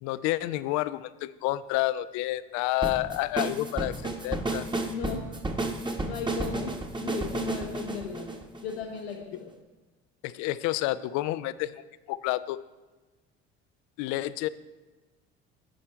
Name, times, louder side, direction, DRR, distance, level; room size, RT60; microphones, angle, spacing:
voice 1, 0.0-4.7 10.2-11.8 12.1-12.6 14.0-14.5, left 16 dB, 65° left, 16 dB, 0.4 m, -29 dB
sound 1, 2.8-9.1, right 2 dB, 15° right, 1.0 m, -32 dB
voice 2, 4.9-5.4 6.0-8.3 8.6-9.5, left 6 dB, 90° left, 2 dB, 1.2 m, -36 dB
10.0 x 4.5 x 4.4 m, 1.2 s
hypercardioid pair, 65°, 31 cm